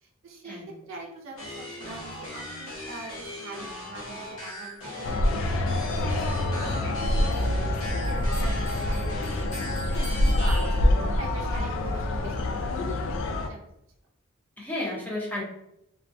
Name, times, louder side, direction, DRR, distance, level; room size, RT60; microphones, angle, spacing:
voice 1, 0.0-5.4 5.9-10.0 10.4-13.1 13.4-13.6, right 2 dB, 65° right, -1 dB, 0.5 m, -43 dB
sound 1, 1.4-10.8, left 1 dB, 80° left, 0.9 m, -39 dB
sound 2, 5.0-13.5, left 1 dB, 65° left, 0.3 m, -26 dB
Bell, 6.7-11.2, left 1 dB, 40° left, 1.0 m, -48 dB
voice 2, 14.6-15.4, left 1 dB, 10° left, -4 dB, 0.6 m, -33 dB
2.3 x 2.1 x 2.5 m, 0.80 s
head